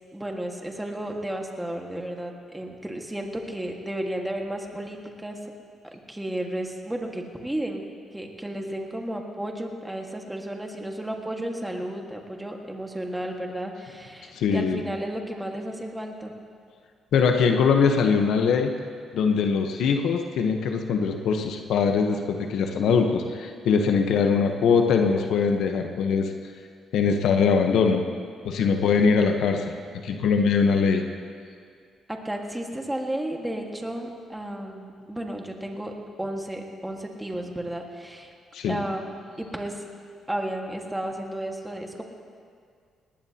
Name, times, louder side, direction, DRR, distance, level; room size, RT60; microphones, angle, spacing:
voice 1, 0.1-5.4 5.9-7.8 8.1-16.3 32.1-38.3 38.7-39.8 40.3-42.0, right 1 dB, 10° right, 2 dB, 1.7 m, -33 dB
voice 2, 14.3-14.8 17.1-18.7 19.1-26.3 26.9-28.0 28.4-29.7 30.0-31.1 38.5-38.8, left 5 dB, 80° left, 4 dB, 1.0 m, -22 dB
19.0 x 18.5 x 2.9 m, 2.2 s
cardioid pair, 90°, 0 cm